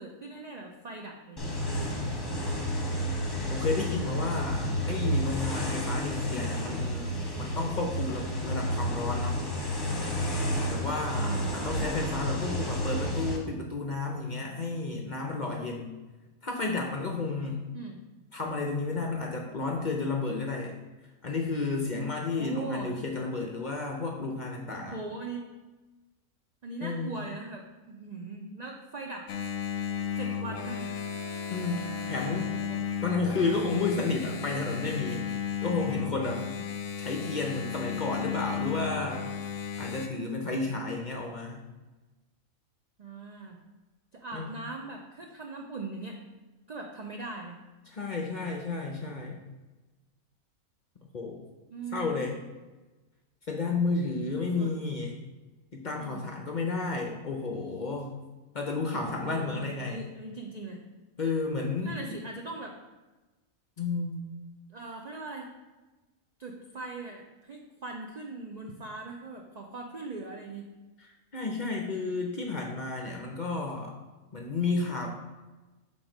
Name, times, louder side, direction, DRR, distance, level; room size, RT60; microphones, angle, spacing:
voice 1, 0.0-1.5 6.3-6.5 11.1-12.1 17.7-18.0 22.3-22.9 24.9-25.5 26.6-29.3 30.2-30.9 32.4-32.8 36.4-36.7 43.0-43.6 44.1-46.2 46.7-47.6 51.7-52.3 54.4-54.7 55.9-56.3 59.2-60.8 61.8-62.8 64.7-65.5 66.4-70.7, right 3 dB, 70° right, 1 dB, 0.3 m, -40 dB
sound 1, 1.4-13.4, equal, 20° left, 0.9 m, -31 dB
voice 2, 3.5-7.1 7.4-9.4 10.7-15.9 16.4-17.6 18.3-20.8 21.2-25.0 26.8-27.1 31.5-32.5 33.0-35.2 35.6-36.4 37.0-39.3 39.8-41.6 44.3-44.5 47.9-49.4 51.1-51.4 51.9-52.3 53.5-55.2 55.7-58.2 58.5-60.0 61.2-62.2 63.8-64.2 71.0-73.9 74.3-75.1, left 3 dB, 50° left, 1 dB, 0.6 m, -32 dB
Engine, 29.3-40.1, left 8 dB, 70° left, 0.9 m, -34 dB
Wind instrument woodwind instrument, 29.8-33.4, right 3 dB, 30° right, 1.4 m, -47 dB
6.1 x 3.8 x 5.0 m, 1.2 s
omnidirectional pair, 1.5 m